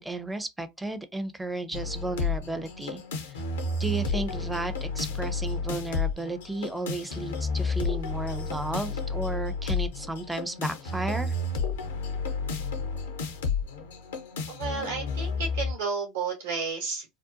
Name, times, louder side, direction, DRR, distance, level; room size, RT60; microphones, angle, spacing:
voice 1, 0.0-3.4 3.8-11.3, right 2 dB, 5° right, 0.4 m, -33 dB
sound 1, 1.7-15.7, left 4 dB, 80° left, 0.6 m, -31 dB
voice 2, 14.5-17.0, right 5 dB, 75° right, 0.7 m, -32 dB
2.7 x 2.1 x 2.4 m
hypercardioid pair, 80°, 0 cm